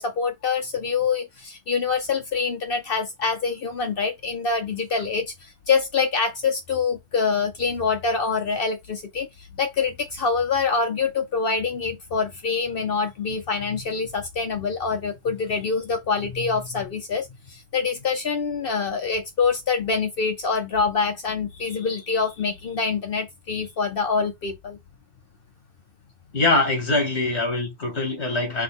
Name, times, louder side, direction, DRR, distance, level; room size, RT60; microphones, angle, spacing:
voice 1, 0.0-24.8, left 5 dB, 60° left, 1.0 m, -25 dB
voice 2, 26.3-28.6, left 2 dB, 75° left, 2.3 m, -23 dB
6.2 x 2.3 x 3.5 m
omnidirectional pair, 1.1 m